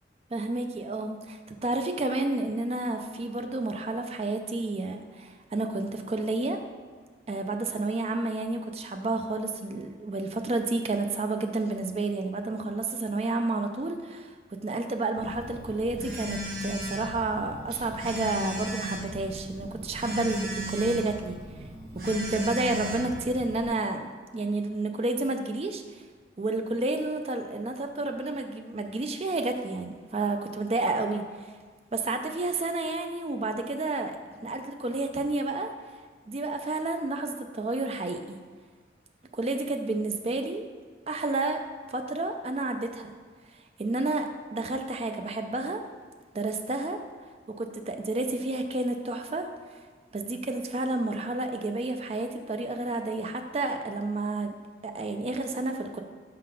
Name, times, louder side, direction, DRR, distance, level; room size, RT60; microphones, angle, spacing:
voice 1, 0.3-6.6 7.3-21.4 22.0-26.0 26.4-31.2 31.9-34.2 34.4-35.7 36.3-38.4 39.3-40.7 41.1-43.1 43.8-45.8 46.3-47.0 47.6-49.5 50.1-54.5 54.8-56.0, right 2 dB, 35° right, 6 dB, 0.4 m, -30 dB
Telephone, 15.2-23.7, equal, 55° right, 1.2 m, -36 dB
5.5 x 3.9 x 5.1 m, 1.5 s
head